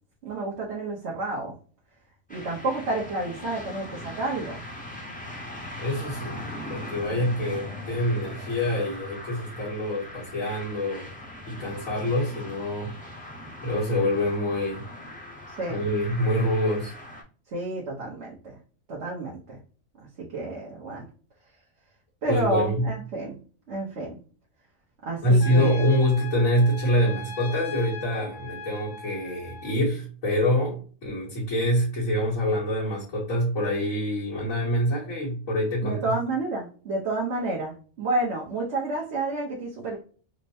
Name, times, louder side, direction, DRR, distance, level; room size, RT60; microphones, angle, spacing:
voice 1, 0.2-1.5 2.3-4.6 15.6-15.8 17.5-18.6 18.9-19.6 20.3-21.1 22.2-23.4 23.7-24.2 25.0-25.8 35.8-40.0, right 2 dB, 60° right, 1.2 m, -30 dB
sound 1, 2.3-17.2, left 1 dB, 10° left, 0.7 m, -40 dB
voice 2, 5.8-6.4 6.7-11.1 11.5-13.0 13.6-14.9 15.7-16.9 22.3-22.9 25.2-36.2, equal, 80° left, 1.8 m, -25 dB
Trumpet, 25.4-29.8, left 2 dB, 55° left, 0.6 m, -40 dB
4.3 x 2.1 x 2.7 m
omnidirectional pair, 1.4 m